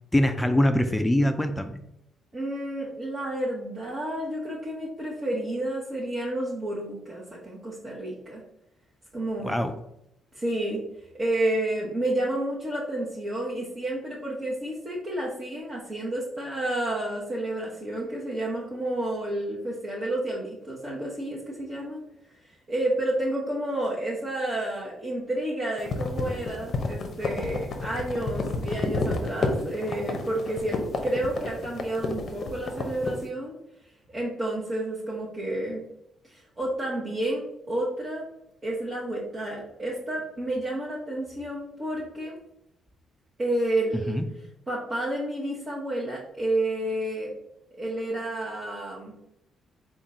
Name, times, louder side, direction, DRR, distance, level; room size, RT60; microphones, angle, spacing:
voice 1, 0.1-1.8 9.4-9.7 44.1-44.3, left 1 dB, 10° left, 7 dB, 0.3 m, -23 dB
voice 2, 2.3-8.4 9.1-9.6 10.3-10.8 11.2-22.0 22.7-33.6 34.1-35.8 36.2-37.4 37.7-38.2 38.6-42.3 43.4-44.2 44.7-47.3 47.8-49.2, right 1 dB, 30° right, -6 dB, 0.9 m, -30 dB
sound 1, 25.8-33.2, left 3 dB, 50° left, 0.6 m, -30 dB
3.6 x 2.4 x 4.1 m, 0.81 s
cardioid pair, 90°, 0 cm